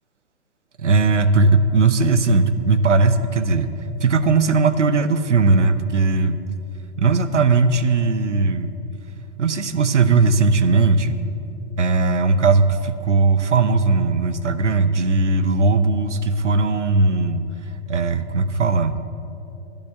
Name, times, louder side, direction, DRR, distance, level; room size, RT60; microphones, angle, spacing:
voice 1, 0.8-3.7 4.0-6.4 7.0-8.7 9.4-11.2 11.8-17.4 17.9-19.0, right 3 dB, 90° right, 12 dB, 0.8 m, -18 dB
10.5 x 8.9 x 7.5 m, 3.0 s
figure-of-eight pair, 115°, 35 cm